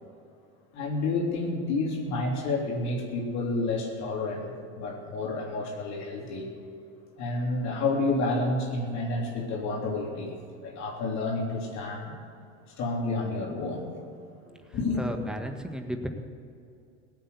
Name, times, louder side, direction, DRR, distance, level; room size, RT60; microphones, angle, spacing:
voice 1, 0.7-6.5 7.2-10.4 10.6-12.2 12.8-13.9 14.7-15.0, left 2 dB, 50° left, -2 dB, 3.5 m, -30 dB
voice 2, 15.0-16.1, equal, ahead, 4 dB, 1.7 m, -34 dB
18.0 x 8.5 x 8.3 m, 2.5 s
supercardioid pair, 100°, 34 cm